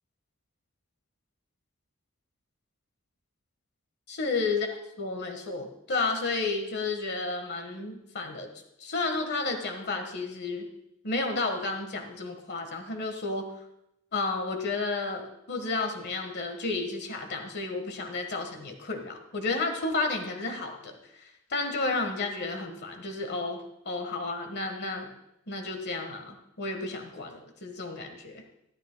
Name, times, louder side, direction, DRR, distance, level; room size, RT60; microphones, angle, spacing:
voice 1, 4.1-4.7 5.0-8.5 8.8-10.7 11.0-13.5 14.1-21.0 21.5-25.1 25.5-28.4, left 3 dB, 50° left, 5 dB, 1.5 m, -32 dB
13.5 x 13.0 x 2.3 m, 0.82 s
head